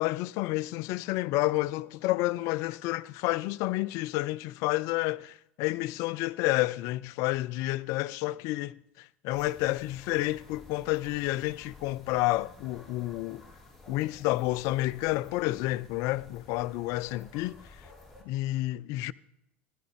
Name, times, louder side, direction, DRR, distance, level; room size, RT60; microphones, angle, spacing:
voice 1, 0.0-8.8 9.2-13.4 13.9-17.6 18.3-19.1, left 18 dB, 55° left, 0.4 m, -30 dB
sound 1, 9.3-18.2, left 3 dB, 5° left, 3.3 m, -53 dB
15.5 x 11.0 x 3.5 m
figure-of-eight pair, 75°, 7 cm